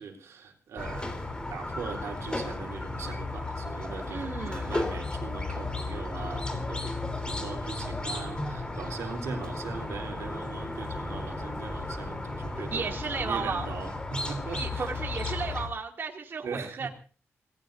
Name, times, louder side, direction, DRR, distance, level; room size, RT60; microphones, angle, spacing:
voice 1, 0.0-14.9 15.2-15.4 16.4-16.9, right 5 dB, 90° right, 2 dB, 3.8 m, -40 dB
Squeak, 0.8-15.7, left 2 dB, 20° left, 3.6 m, -34 dB
voice 2, 4.1-4.8 12.7-13.7 14.5-16.9, right 5 dB, 50° right, 1 dB, 2.6 m, -34 dB
28.0 x 19.0 x 2.7 m, 0.38 s
wide cardioid pair, 120°, 5 cm